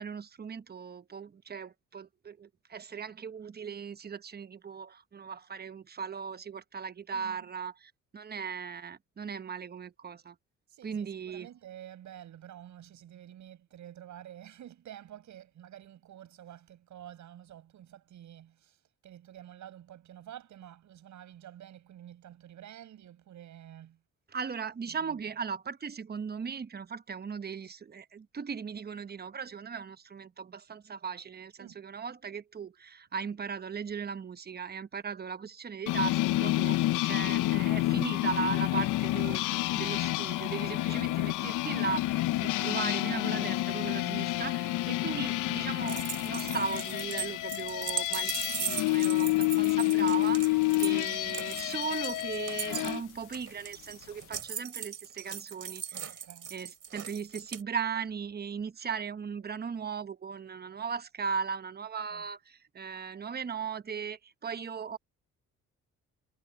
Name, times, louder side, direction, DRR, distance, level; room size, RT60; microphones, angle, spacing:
voice 1, 0.0-10.4 10.8-11.5 24.3-56.2 56.5-65.0, right 6 dB, 35° right, 1.0 m, -38 dB
voice 2, 7.1-7.5 10.7-24.0 24.9-25.2 31.6-31.8 44.2-44.4 49.1-49.5 56.1-56.6 62.1-62.2, right 11 dB, 70° right, 6.9 m, -50 dB
sound 1, 35.9-53.0, left 18 dB, 90° left, 0.6 m, -29 dB
sound 2, 45.9-57.6, right 8 dB, 50° right, 3.2 m, -39 dB
cardioid pair, 90°, 30 cm